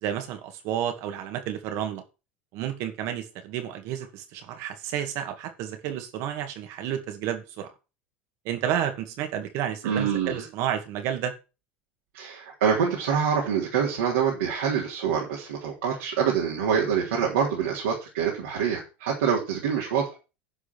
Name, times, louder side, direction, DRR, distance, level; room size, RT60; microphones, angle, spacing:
voice 1, 0.0-2.0 2.5-7.7 8.4-11.3, right 10 dB, 60° right, 7 dB, 2.2 m, -31 dB
voice 2, 9.8-10.4 12.1-20.1, right 7 dB, 80° right, -2 dB, 3.4 m, -26 dB
11.0 x 5.1 x 6.2 m, 0.31 s
hypercardioid pair, 85°, 6 cm